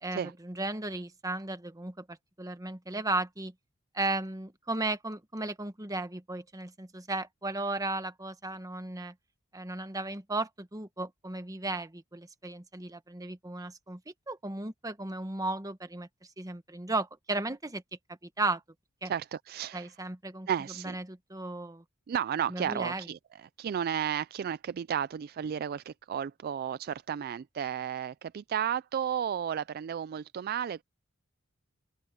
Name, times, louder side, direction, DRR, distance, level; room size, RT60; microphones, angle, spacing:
voice 1, 0.0-3.5 3.9-9.1 9.5-16.1 16.4-17.8 18.4-18.6 19.0-19.1 19.7-20.5 20.8-21.8 22.5-23.1, right 2 dB, 15° right, 1.3 m, -35 dB
voice 2, 19.0-19.9 20.5-21.0 22.1-30.8, right 8 dB, 50° right, 0.3 m, -33 dB
open air
head